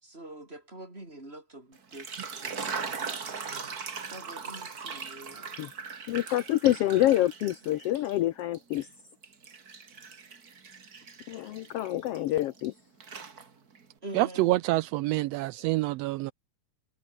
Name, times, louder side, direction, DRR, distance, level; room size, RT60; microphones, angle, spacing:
voice 1, 0.0-3.0 4.1-5.5 14.0-14.6, right 1 dB, 20° right, 5.9 m, -45 dB
sound 1, 1.8-8.2 8.5-12.7 13.0-13.8, right 5 dB, 35° right, 2.3 m, -40 dB
voice 2, 6.1-8.9 11.3-12.7, left 14 dB, 75° left, 1.5 m, -27 dB
voice 3, 14.1-16.3, right 18 dB, 85° right, 1.4 m, -27 dB
omnidirectional pair, 3.4 m